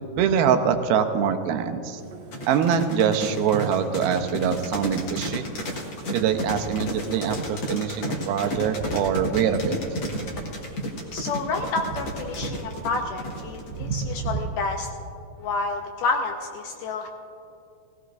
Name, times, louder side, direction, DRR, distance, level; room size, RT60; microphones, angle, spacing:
voice 1, 0.2-2.0 2.5-5.5 6.1-9.7, right 8 dB, 90° right, 6 dB, 2.6 m, -24 dB
sound 1, 2.0-14.4, right 4 dB, 65° right, 2.1 m, -39 dB
sound 2, 2.3-13.8, equal, 60° left, 1.2 m, -32 dB
voice 2, 11.1-14.9 15.4-17.1, left 3 dB, 80° left, 3 dB, 2.0 m, -29 dB
17.5 x 17.0 x 2.6 m, 2.7 s
omnidirectional pair, 4.3 m